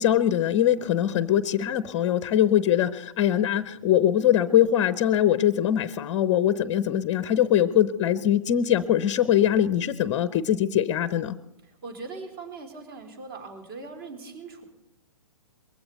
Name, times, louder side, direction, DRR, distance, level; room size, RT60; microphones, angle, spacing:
voice 1, 0.0-11.3, left 11 dB, 25° left, 15 dB, 0.6 m, -22 dB
voice 2, 11.6-14.6, right 3 dB, 40° right, 5 dB, 4.0 m, -41 dB
22.0 x 16.0 x 4.1 m, 0.88 s
figure-of-eight pair, 130°, 17 cm